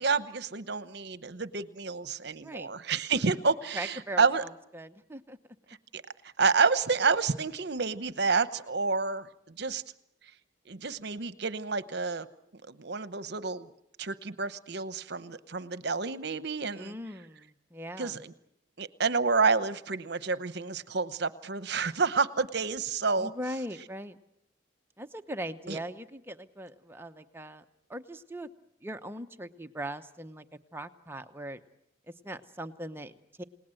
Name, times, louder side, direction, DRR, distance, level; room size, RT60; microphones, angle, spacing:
voice 1, 0.0-4.4 5.9-6.0 6.4-9.3 9.6-9.8 10.7-12.3 12.7-13.7 14.0-16.9 18.0-18.3 18.8-23.3 25.7-25.8, right 4 dB, 60° right, 13 dB, 1.0 m, -29 dB
voice 2, 2.4-2.7 3.7-5.4 16.7-18.2 23.2-24.2 25.0-27.6 27.9-28.5 28.8-30.4 30.7-31.6 32.2-33.4, right 1 dB, 10° right, 7 dB, 0.9 m, -40 dB
29.0 x 18.5 x 7.8 m, 0.76 s
head